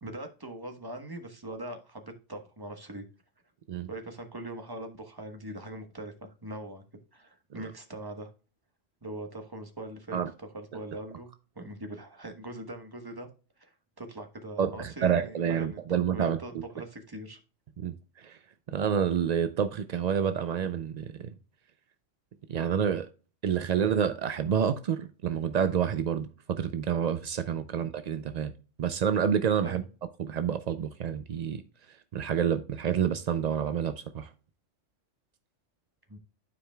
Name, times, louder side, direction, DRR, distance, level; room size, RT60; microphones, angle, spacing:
voice 1, 0.0-3.1 3.9-6.8 7.1-8.3 9.0-10.2 10.5-11.3 11.5-13.3 13.6-17.4 27.6-27.8 29.6-29.8 36.1-36.2, right 1 dB, 20° right, 1.1 m, -41 dB
voice 2, 14.6-16.4 17.8-18.4 18.7-21.3 22.5-23.1 23.4-28.5 28.8-29.8 30.2-31.6 32.1-34.3, right 8 dB, 65° right, 0.4 m, -28 dB
12.0 x 4.9 x 2.2 m
omnidirectional pair, 1.3 m